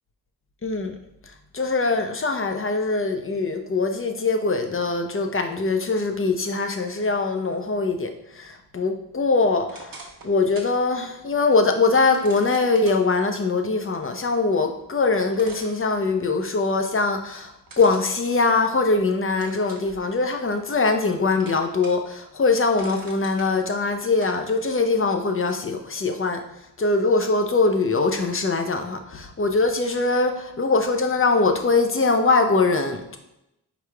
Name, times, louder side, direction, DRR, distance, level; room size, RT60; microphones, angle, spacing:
voice 1, 0.6-1.0 1.5-26.4 26.8-33.2, left 3 dB, 30° left, 5 dB, 0.7 m, -22 dB
sound 1, 9.6-10.8 11.2-11.3 12.1-13.0 14.8-14.9 15.3-16.4 17.7-18.9 19.4-19.9 20.4-21.1 21.4-22.1 22.5-23.5 24.2-24.4, right 3 dB, 55° right, 1.1 m, -44 dB
4.8 x 4.8 x 2.3 m, 0.86 s
cardioid pair, 55°, 41 cm